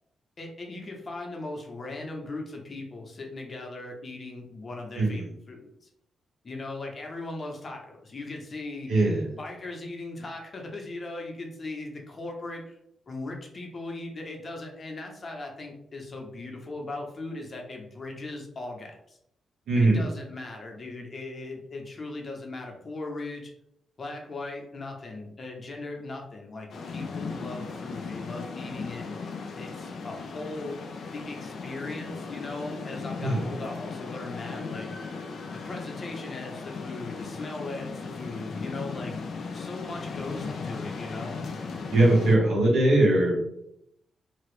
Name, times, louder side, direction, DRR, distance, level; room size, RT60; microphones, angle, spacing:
voice 1, 0.4-5.9 6.4-8.9 9.4-12.8 13.1-19.2 19.8-23.5 24.0-29.0 29.6-30.8 31.1-34.9 35.5-39.2 39.5-41.4, left 2 dB, 45° left, 1 dB, 0.9 m, -38 dB
voice 2, 4.9-5.3 8.9-9.3 19.7-20.1 33.2-33.4 41.9-43.5, right 2 dB, 75° right, -3 dB, 1.2 m, -21 dB
sound 1, 26.7-42.4, left 4 dB, 65° left, 0.5 m, -37 dB
2.9 x 2.8 x 3.2 m, 0.77 s
supercardioid pair, 50°, 0 cm